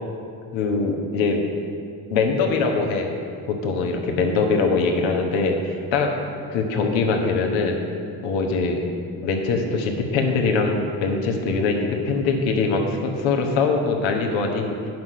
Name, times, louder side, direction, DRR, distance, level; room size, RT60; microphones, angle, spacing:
voice 1, 0.5-1.4 2.1-3.1 3.5-6.1 6.5-7.8 8.2-8.9 9.2-14.9, left 4 dB, 65° left, 2 dB, 1.2 m, -22 dB
9.3 x 6.1 x 5.5 m, 2.5 s
hypercardioid pair, 50°, 49 cm